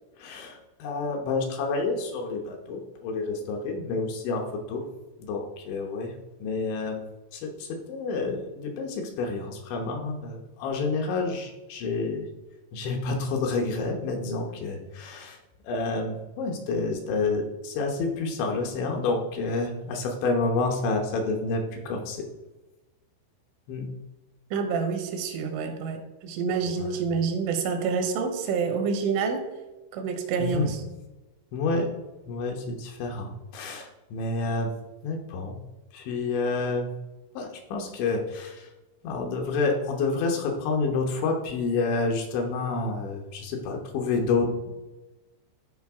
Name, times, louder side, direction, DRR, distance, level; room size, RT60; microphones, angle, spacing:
voice 1, 0.2-4.8 5.2-6.1 6.4-7.0 7.3-12.3 12.7-15.4 15.6-22.3 23.7-23.9 26.8-26.9 30.4-30.7 31.5-31.9 32.3-34.7 35.0-35.6 35.9-36.9 37.4-38.7 39.0-44.7, left 3 dB, 75° left, 2 dB, 3.1 m, -29 dB
voice 2, 24.5-29.5 29.9-30.8, right 5 dB, 80° right, 5 dB, 3.5 m, -28 dB
13.5 x 5.1 x 3.6 m, 1.1 s
omnidirectional pair, 5.8 m